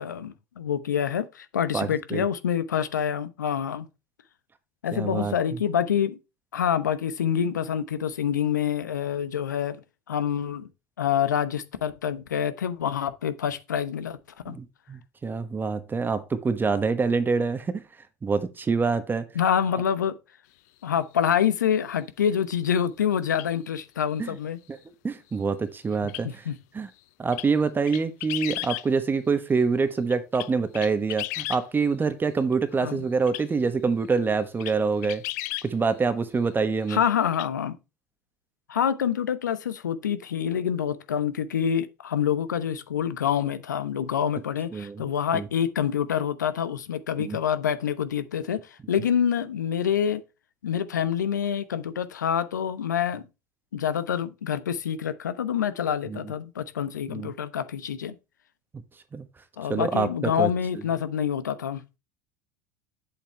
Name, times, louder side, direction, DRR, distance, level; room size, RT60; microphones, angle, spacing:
voice 1, 0.0-3.9 4.8-6.2 6.5-9.8 10.1-10.7 11.0-14.2 14.4-14.6 19.3-20.2 20.8-24.6 26.2-26.6 32.8-33.0 36.9-37.8 38.7-50.2 50.6-53.3 53.7-58.1 59.6-61.8, left 8 dB, 85° left, 0.9 m, -26 dB
voice 2, 1.7-2.2 4.9-5.3 14.5-17.8 18.2-19.2 24.2-24.4 25.0-26.4 26.7-26.9 27.2-35.2 35.6-37.0 44.7-45.1 45.3-45.5 47.2-47.4 56.1-56.2 57.1-57.3 59.1-59.2 59.7-60.5, right 4 dB, 20° right, 1.2 m, -26 dB
sound 1, 23.3-23.5 26.1-26.2 27.3-27.5 27.9-28.9 30.1-31.6 33.3-33.4 34.1-34.2 34.6-34.8 35.0-35.7 37.3-37.5, left 18 dB, 65° left, 0.5 m, -33 dB
8.7 x 7.7 x 3.4 m
hypercardioid pair, 80°, 9 cm